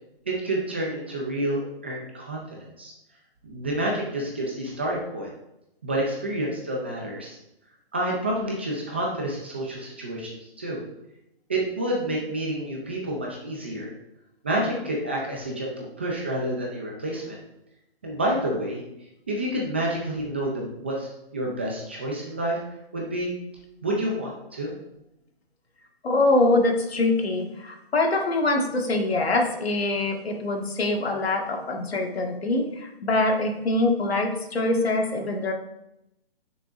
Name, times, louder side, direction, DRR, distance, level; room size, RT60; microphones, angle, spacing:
voice 1, 0.3-2.9 3.4-5.3 5.8-7.4 7.9-10.3 10.6-10.8 11.5-13.9 14.4-17.4 18.0-18.8 19.3-22.6 22.9-23.3 23.8-24.7, right 1 dB, 10° right, -2 dB, 0.4 m, -29 dB
voice 2, 26.0-35.5, left 2 dB, 90° left, 2 dB, 1.7 m, -24 dB
9.6 x 6.1 x 2.5 m, 0.86 s
hypercardioid pair, 165°, 30 cm